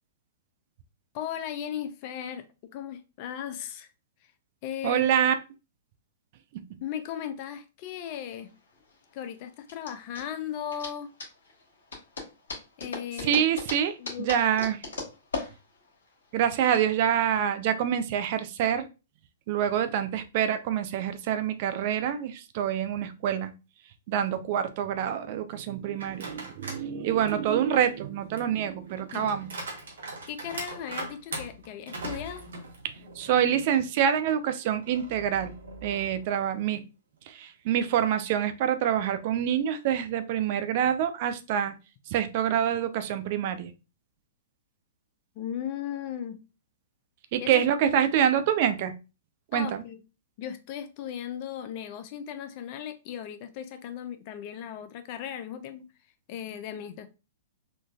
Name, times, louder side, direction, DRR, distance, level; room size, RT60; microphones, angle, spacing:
voice 1, 1.1-2.4 2.7-3.9 4.6-5.1 6.8-8.5 9.1-11.1 12.8-13.4 14.0-14.4 29.1-29.3 30.3-32.5 45.4-46.4 47.4-47.5 49.5-50.0 50.4-55.8 56.3-57.1, left 9 dB, 45° left, 0.5 m, -36 dB
voice 2, 4.8-5.3 6.5-6.6 13.2-14.8 16.3-18.9 19.5-23.5 24.1-29.5 33.2-35.5 35.8-36.8 37.3-41.8 42.1-43.7 47.3-48.9 49.5-49.8, right 9 dB, 50° right, 0.4 m, -26 dB
sound 1, 7.9-16.8, left 3 dB, 80° left, 1.2 m, -39 dB
sound 2, 26.0-26.9 27.3-33.4 33.8-33.9 34.8-36.3, right 2 dB, 75° right, 1.0 m, -41 dB
3.8 x 2.5 x 2.3 m
hypercardioid pair, 120°, 0 cm